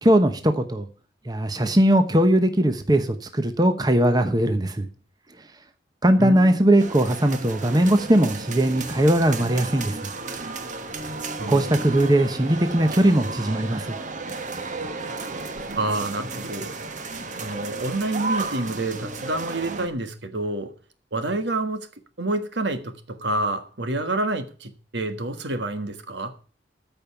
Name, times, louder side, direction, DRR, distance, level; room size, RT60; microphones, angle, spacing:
voice 1, 0.0-0.9 1.3-4.9 6.0-10.0 11.5-14.0, right 1 dB, 20° right, 0.9 m, -20 dB
voice 2, 6.2-6.6 11.4-11.8 15.8-16.7 17.4-20.7 21.1-21.9 22.2-26.3, right 2 dB, 75° right, 1.5 m, -28 dB
sound 1, 6.8-19.9, right 3 dB, 45° right, 1.2 m, -33 dB
13.5 x 5.3 x 7.0 m
head